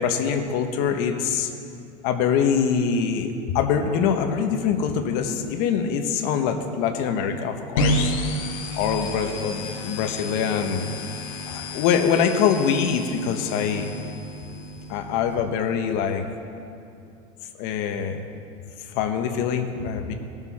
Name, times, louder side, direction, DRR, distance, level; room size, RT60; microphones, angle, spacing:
voice 1, 0.0-1.5 2.0-8.2 8.7-10.9 11.5-13.9 14.9-16.2 17.6-18.2 18.9-20.1, left 7 dB, 65° left, 5 dB, 1.1 m, -24 dB
sound 1, 7.8-15.4, left 1 dB, 80° left, 1.4 m, -30 dB
18.0 x 7.0 x 4.2 m, 2.6 s
supercardioid pair, 125°, 17 cm